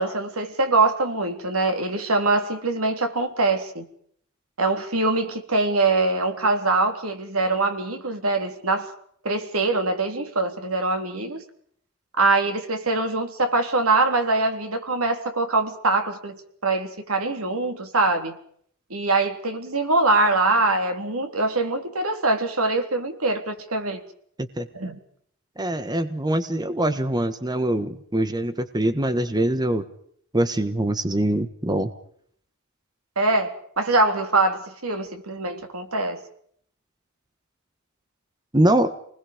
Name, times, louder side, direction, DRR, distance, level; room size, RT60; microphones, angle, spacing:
voice 1, 0.0-3.9 4.6-8.9 9.2-11.4 12.2-16.4 16.6-18.4 18.9-24.0 24.7-25.0 33.2-36.2, right 3 dB, 90° right, 6 dB, 3.5 m, -23 dB
voice 2, 25.6-29.8 30.3-31.9 38.5-38.9, right 1 dB, 20° right, 10 dB, 1.5 m, -23 dB
30.0 x 20.5 x 5.3 m, 0.63 s
head